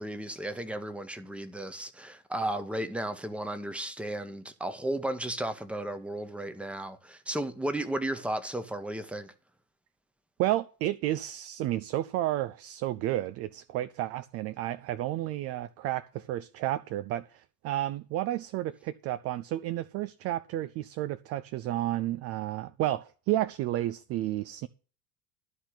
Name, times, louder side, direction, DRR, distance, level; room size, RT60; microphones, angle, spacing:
voice 1, 0.0-9.3, right 1 dB, ahead, 1.1 m, -34 dB
voice 2, 10.4-24.7, right 14 dB, 30° right, 0.5 m, -31 dB
12.5 x 4.3 x 8.3 m
figure-of-eight pair, 80°, 48 cm